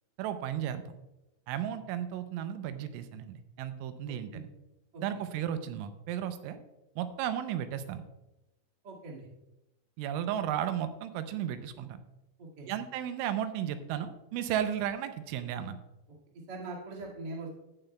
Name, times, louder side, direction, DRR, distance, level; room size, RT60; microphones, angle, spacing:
voice 1, 0.2-0.9 1.5-4.5 5.0-6.6 7.0-8.0 10.0-12.0 12.7-15.8, right 10 dB, 85° right, 10 dB, 3.1 m, -34 dB
voice 2, 8.8-9.3 12.4-12.7 16.5-17.6, right 2 dB, 60° right, -3 dB, 1.1 m, -42 dB
17.0 x 7.7 x 2.2 m, 0.97 s
omnidirectional pair, 5.5 m